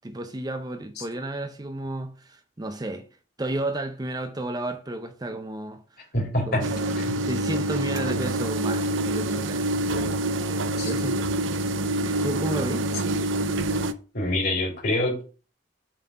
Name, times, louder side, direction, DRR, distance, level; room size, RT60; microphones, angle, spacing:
voice 1, 0.0-3.1 3.4-6.1 6.5-6.7 7.2-11.2 12.0-12.9, right 1 dB, 20° right, 0.6 m, -32 dB
voice 2, 6.1-6.6 7.0-7.1 10.8-10.9 14.1-15.2, left 1 dB, 55° left, 3.6 m, -25 dB
sound 1, 6.6-13.9, right 1 dB, 80° right, 0.5 m, -26 dB
7.2 x 3.8 x 5.6 m
head